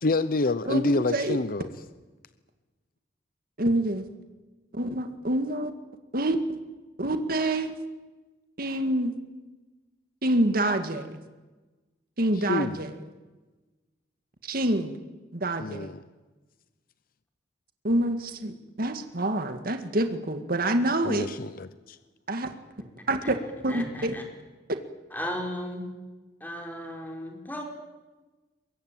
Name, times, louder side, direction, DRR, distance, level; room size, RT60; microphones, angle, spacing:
voice 1, 0.0-1.7 12.5-12.8 15.6-16.0 21.0-22.0, left 2 dB, 55° left, 0.8 m, -27 dB
voice 2, 0.7-1.4 3.6-4.1 4.7-5.7 6.1-6.4 7.0-7.8 8.6-9.1 10.2-11.2 12.2-12.9 14.4-14.9 15.3-15.9 17.8-21.3 22.3-22.5 23.1-23.4 23.6-24.1, right 1 dB, 55° right, 1.9 m, -27 dB
voice 3, 23.7-24.2 25.1-25.9 26.4-27.6, equal, 10° left, 4.9 m, -35 dB
23.5 x 22.5 x 9.0 m
head